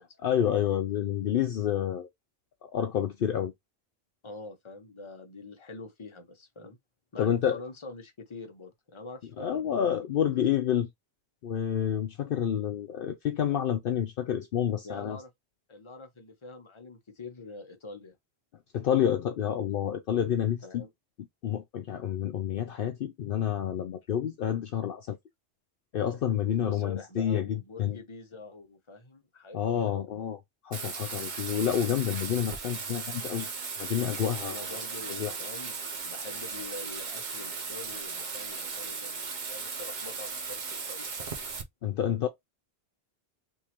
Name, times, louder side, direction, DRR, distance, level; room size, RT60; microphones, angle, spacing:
voice 1, 0.2-2.1 2.7-3.5 7.2-7.6 9.4-10.9 11.4-15.2 18.7-20.8 21.4-25.2 25.9-28.0 29.5-30.4 30.6-33.5 33.8-34.6 35.2-35.3 41.8-42.3, left 9 dB, 65° left, 0.7 m, -29 dB
voice 2, 4.2-6.8 7.1-10.4 14.8-15.3 15.7-18.2 20.6-20.9 26.3-30.1 34.4-35.7 36.0-41.5, left 3 dB, 30° left, 0.9 m, -45 dB
Bathtub (filling or washing), 30.7-41.6, right 5 dB, 50° right, 0.8 m, -37 dB
3.6 x 3.0 x 2.9 m
omnidirectional pair, 1.1 m